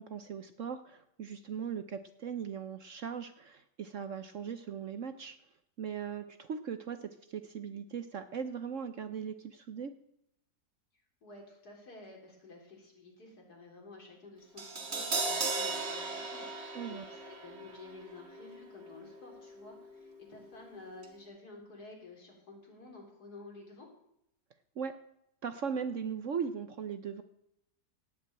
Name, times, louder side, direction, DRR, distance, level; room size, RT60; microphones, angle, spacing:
voice 1, 0.0-5.4 5.8-9.9 16.7-17.0 24.8-24.9 25.4-27.2, right 7 dB, 55° right, 10 dB, 1.0 m, -39 dB
voice 2, 11.2-23.9, left 3 dB, 65° left, 0 dB, 4.1 m, -51 dB
Crash cymbal, 14.6-20.7 21.0-21.1, right 3 dB, 40° right, 1.9 m, -38 dB
17.5 x 6.2 x 8.7 m, 0.78 s
omnidirectional pair, 1.8 m